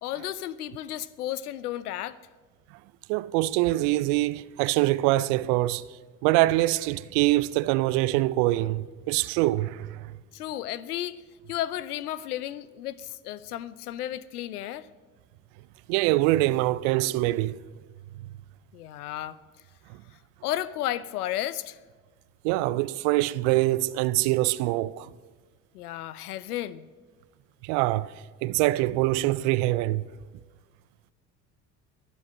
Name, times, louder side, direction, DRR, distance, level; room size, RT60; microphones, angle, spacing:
voice 1, 0.0-2.2 10.3-11.2 11.5-14.9 18.7-19.4 20.4-21.8 25.7-26.9, left 13 dB, 90° left, 0.6 m, -33 dB
voice 2, 3.1-5.9 6.2-10.1 15.9-17.6 22.4-25.1 27.6-28.1 28.4-30.1, right 17 dB, 70° right, 0.6 m, -24 dB
22.5 x 7.7 x 6.2 m
hypercardioid pair, 55°, 44 cm